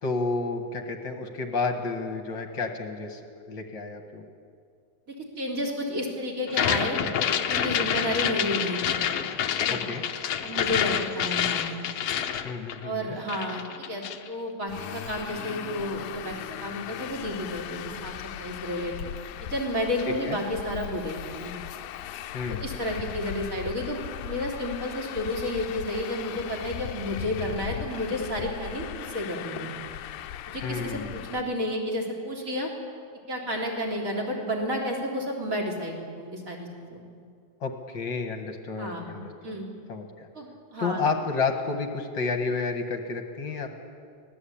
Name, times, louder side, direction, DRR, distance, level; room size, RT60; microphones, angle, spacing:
voice 1, 0.0-3.2 3.5-4.3 9.7-10.0 12.4-13.2 20.2-20.4 22.3-22.6 30.6-31.2 37.6-39.6 39.9-40.3 40.8-43.7, left 4 dB, 45° left, 5 dB, 2.1 m, -31 dB
voice 2, 5.1-9.0 9.5-9.8 10.4-11.8 12.8-16.4 16.6-19.1 19.5-21.5 22.5-29.7 30.5-32.7 33.3-37.0 38.8-39.1 39.4-39.7 40.3-41.0, equal, 25° right, 1 dB, 3.8 m, -31 dB
sound 1, 6.5-13.0 13.3-14.3, left 9 dB, 65° left, 1.8 m, -27 dB
Traffic noise roadway noise, 14.7-31.4, left 11 dB, 90° left, 2.3 m, -38 dB
25.0 x 18.5 x 8.7 m, 2.2 s
omnidirectional pair, 3.4 m